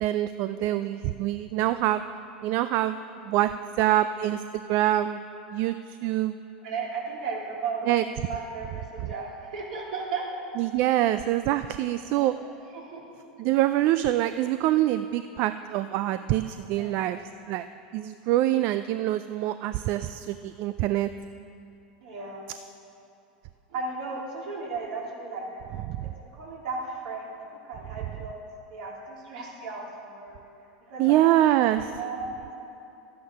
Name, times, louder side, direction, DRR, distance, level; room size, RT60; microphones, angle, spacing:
voice 1, 0.0-2.0 2.4-5.2 5.5-6.4 7.9-8.0 9.0-9.1 10.6-12.4 13.4-17.2 17.5-17.7 17.9-21.1 25.9-26.1 31.0-31.9, right 14 dB, 55° right, 11 dB, 0.4 m, -25 dB
voice 2, 6.6-8.0 8.3-10.2 12.1-12.4 12.7-13.0 16.8-17.0 22.0-22.4 23.7-25.5 26.3-28.4 28.7-30.4 30.9-31.2 31.5-31.7 32.0-32.6, right 4 dB, 70° right, -3 dB, 3.4 m, -35 dB
12.5 x 9.3 x 5.9 m, 2.8 s
hypercardioid pair, 100°, 5 cm